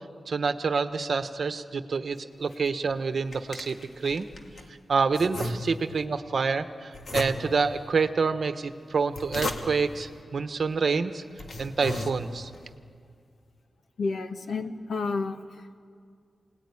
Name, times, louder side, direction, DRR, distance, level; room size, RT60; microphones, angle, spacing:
voice 1, 0.3-4.3 4.9-11.2 11.6-12.5, right 5 dB, 55° right, 9 dB, 1.1 m, -27 dB
sound 1, 2.9-4.7 5.1-6.0 6.9-7.7 8.9-10.0 10.7-10.8 11.3-12.6, left 2 dB, 55° left, 2.0 m, -36 dB
voice 2, 14.0-15.8, left 4 dB, 75° left, 7 dB, 1.4 m, -31 dB
27.0 x 19.0 x 9.8 m, 2.2 s
wide cardioid pair, 150°, 0 cm